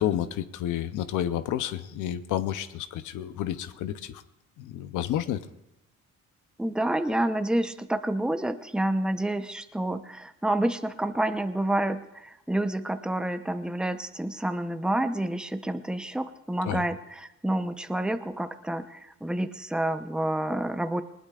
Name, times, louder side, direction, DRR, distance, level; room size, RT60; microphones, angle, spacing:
voice 1, 0.0-4.2 4.6-5.4 16.6-16.8, left 11 dB, 90° left, 12 dB, 0.7 m, -30 dB
voice 2, 6.6-21.0, right 1 dB, 5° right, 9 dB, 0.8 m, -29 dB
20.0 x 19.5 x 2.4 m, 0.91 s
cardioid pair, 90°, 30 cm